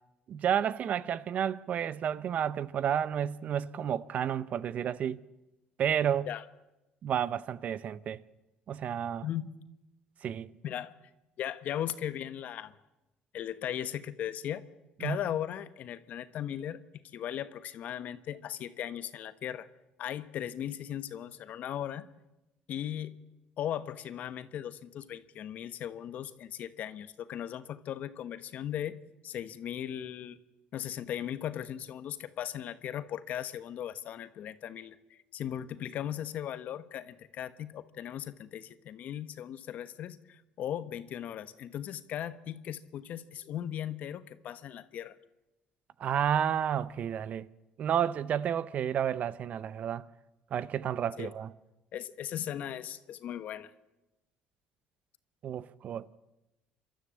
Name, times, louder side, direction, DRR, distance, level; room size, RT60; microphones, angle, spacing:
voice 1, 0.3-5.2 5.8-6.3 7.0-8.2 8.7-9.3 10.2-10.5 15.0-15.2 46.0-47.5 47.8-50.0 50.5-51.5 55.4-56.2, right 9 dB, 55° right, 0.7 m, -31 dB
voice 2, 10.6-10.9 11.4-12.7 13.3-14.6 15.0-16.8 17.1-19.7 20.0-22.1 22.7-23.2 23.6-30.4 30.7-45.2 51.2-51.3 51.9-53.7, left 10 dB, 60° left, 1.1 m, -38 dB
27.0 x 13.0 x 7.5 m
supercardioid pair, 90°, 3 cm